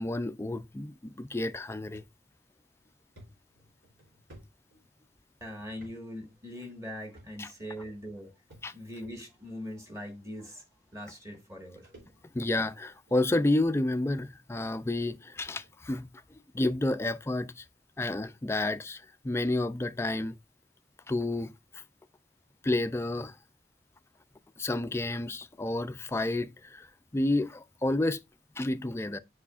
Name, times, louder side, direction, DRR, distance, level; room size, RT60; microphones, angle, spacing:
voice 1, 0.0-2.0 7.4-7.5 8.6-8.7 12.3-16.1 16.5-17.6 18.0-20.3 21.1-21.8 22.6-23.3 24.6-26.9 27.1-28.2 28.6-29.2, left 2 dB, 15° left, 0.3 m, -30 dB
sound 1, 1.9-2.1 2.6-2.7 3.2-5.2 5.7-6.0 6.2-6.4 7.1-7.6 8.5-9.0 9.9-10.0 11.0-11.1 11.3-12.5 12.9-13.2 14.0-14.1 14.6-14.7 15.0-15.1 15.5-15.7, right 1 dB, 85° right, 3.2 m, -55 dB
voice 2, 5.4-8.3 8.7-10.6 10.9-11.9, equal, 15° right, 1.5 m, -41 dB
8.4 x 4.9 x 2.4 m
head